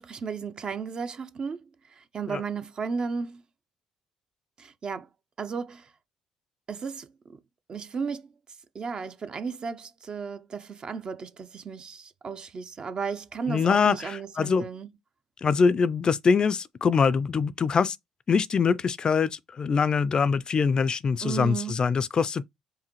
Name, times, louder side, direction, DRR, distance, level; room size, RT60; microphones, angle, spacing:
voice 1, 0.0-1.6 2.0-3.4 4.6-5.1 5.4-5.9 6.7-7.4 7.7-8.3 8.7-14.9 21.2-21.8, right 5 dB, 45° right, 0.5 m, -34 dB
voice 2, 13.5-14.7 15.4-18.0 18.3-22.4, left 5 dB, 45° left, 0.3 m, -24 dB
4.8 x 2.6 x 3.0 m
hypercardioid pair, 50°, 2 cm